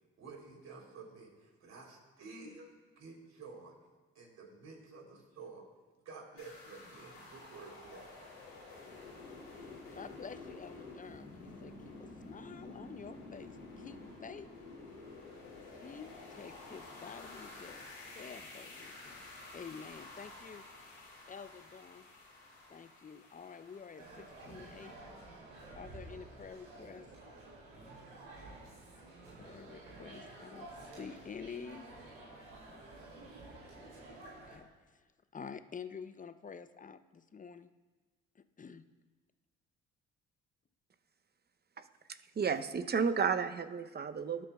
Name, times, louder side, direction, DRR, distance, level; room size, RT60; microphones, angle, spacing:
voice 1, 0.2-3.7 4.1-5.7 6.1-8.2, right 4 dB, 60° right, 0 dB, 3.6 m, -51 dB
sound 1, 6.4-25.0, left 3 dB, 90° left, 2.9 m, -51 dB
voice 2, 9.9-14.5 15.5-17.9 18.1-19.3 19.5-20.7 21.3-22.1 22.7-24.9 25.8-27.1 29.4-31.8 34.5-35.1 35.3-37.7 38.3-38.8, left 6 dB, 25° left, 12 dB, 0.7 m, -49 dB
sound 2, 24.0-34.6, right 2 dB, 90° right, 3.0 m, -51 dB
voice 3, 42.1-44.5, right 6 dB, 35° right, 10 dB, 0.8 m, -32 dB
20.0 x 8.6 x 2.4 m, 1.3 s
hypercardioid pair, 50°, 30 cm